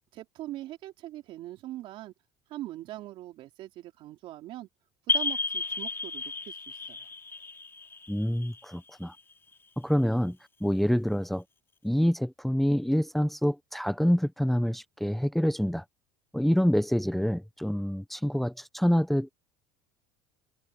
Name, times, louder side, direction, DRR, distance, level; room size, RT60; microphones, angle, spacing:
voice 1, 0.1-2.1 2.5-4.7 5.1-7.1, right 15 dB, 60° right, 3.7 m, -42 dB
sound 1, 5.1-9.5, left 4 dB, 20° left, 3.6 m, -33 dB
voice 2, 8.1-9.1 9.8-11.4 11.8-15.8 16.3-19.3, equal, ahead, 1.1 m, -26 dB
supercardioid pair, 90°, 10 cm